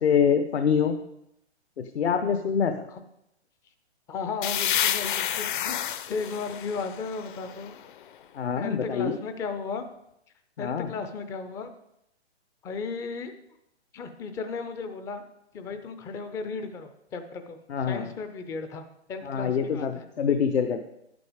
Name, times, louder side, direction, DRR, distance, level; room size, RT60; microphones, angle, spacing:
voice 1, 0.0-0.9 1.8-2.7 8.3-9.2 10.6-10.9 17.7-18.1 19.2-20.9, left 7 dB, 65° left, 7 dB, 1.1 m, -25 dB
voice 2, 4.1-5.8 6.1-7.7 8.6-9.8 10.6-11.7 12.6-13.3 13.9-15.2 15.5-20.0, left 4 dB, 10° left, 9 dB, 0.4 m, -35 dB
sound 1, 4.4-8.0, left 10 dB, 45° left, 0.8 m, -30 dB
11.0 x 9.4 x 5.0 m, 0.81 s
hypercardioid pair, 135°, 34 cm